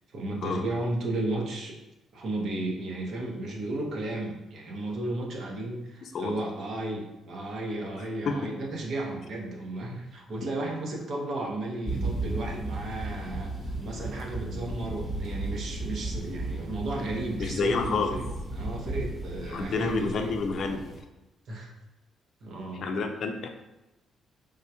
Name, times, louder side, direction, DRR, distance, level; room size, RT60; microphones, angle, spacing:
voice 1, 0.1-1.8 2.1-13.5 13.8-18.2 18.5-20.3 21.5-21.7 22.4-22.9, right 2 dB, 60° right, 0 dB, 0.8 m, -34 dB
voice 2, 6.0-6.3 8.3-8.4 17.4-18.1 19.5-20.8 22.7-23.5, left 4 dB, 60° left, 5 dB, 0.4 m, -29 dB
sound 1, 11.8-21.0, right 2 dB, 5° right, 0.9 m, -35 dB
3.5 x 2.2 x 2.9 m, 0.99 s
cardioid pair, 90°, 0 cm